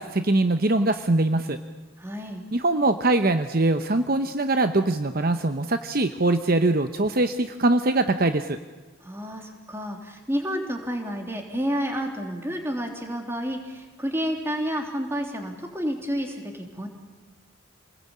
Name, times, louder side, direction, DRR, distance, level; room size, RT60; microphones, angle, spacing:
voice 1, 0.0-1.6 2.5-8.6, right 2 dB, 45° right, 9 dB, 0.9 m, -22 dB
voice 2, 2.0-2.4 9.0-16.9, equal, 10° right, 3 dB, 3.3 m, -30 dB
28.0 x 20.0 x 8.6 m, 1.3 s
head